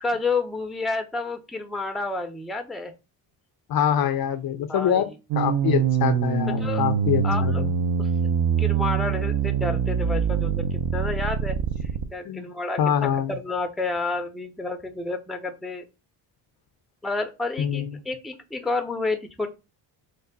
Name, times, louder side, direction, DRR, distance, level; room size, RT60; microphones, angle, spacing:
voice 1, 0.0-2.9 4.7-5.0 6.6-6.8 7.2-7.6 8.0-8.1 8.6-11.6 12.1-12.9 13.3-15.8 17.0-19.5, left 3 dB, ahead, 0.5 m, -30 dB
voice 2, 3.7-5.1 5.4-7.7 12.2-12.5 12.8-13.4 17.6-18.0, left 9 dB, 50° left, 0.5 m, -24 dB
sound 1, 5.3-12.1, right 7 dB, 50° right, 0.6 m, -24 dB
3.3 x 2.1 x 3.9 m
supercardioid pair, 60°, 47 cm